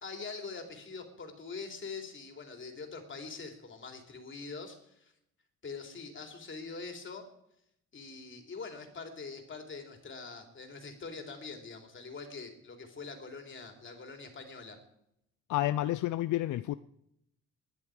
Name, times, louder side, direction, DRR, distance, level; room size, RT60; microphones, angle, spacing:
voice 1, 0.0-5.1 5.6-7.3 7.9-14.8, left 4 dB, 40° left, 3.4 m, -44 dB
voice 2, 15.5-16.7, left 15 dB, 80° left, 0.6 m, -30 dB
21.5 x 10.5 x 5.0 m
cardioid pair, 90°, 30 cm